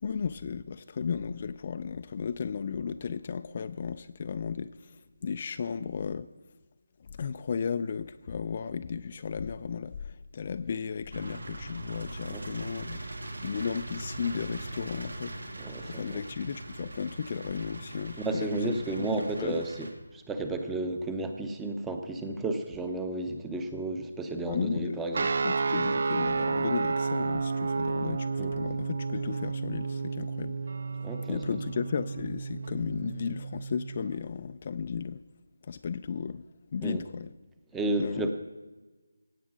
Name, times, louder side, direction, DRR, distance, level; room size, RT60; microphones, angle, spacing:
voice 1, 0.0-6.3 7.0-13.0 13.4-15.6 15.8-19.6 24.5-25.0 25.4-30.6 31.3-35.2 35.6-36.4 36.7-37.3 38.0-38.3, left 6 dB, 35° left, 11 dB, 0.4 m, -34 dB
sound 1, 11.1-19.9, right 2 dB, 85° right, 2.3 m, -41 dB
voice 2, 15.6-16.2 18.2-19.9 20.1-25.3 28.4-28.5 31.0-31.4 36.8-37.0 37.7-38.3, right 2 dB, 5° right, 6 dB, 0.7 m, -32 dB
sound 2, 25.1-34.1, right 4 dB, 50° right, 0.3 m, -31 dB
17.0 x 8.2 x 6.2 m, 1.2 s
figure-of-eight pair, 170°, 0 cm